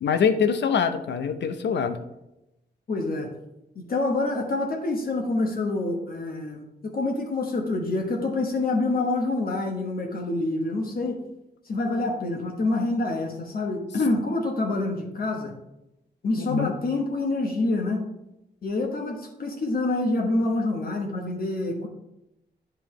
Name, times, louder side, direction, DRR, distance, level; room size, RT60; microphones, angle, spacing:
voice 1, 0.0-2.0 16.4-16.7, left 6 dB, 85° left, 9 dB, 0.7 m, -24 dB
voice 2, 2.9-3.3 3.7-11.2 11.7-15.5 16.2-18.1 18.6-21.9, left 2 dB, 55° left, 1 dB, 1.2 m, -27 dB
9.0 x 5.4 x 3.2 m, 0.90 s
cardioid pair, 90°, 18 cm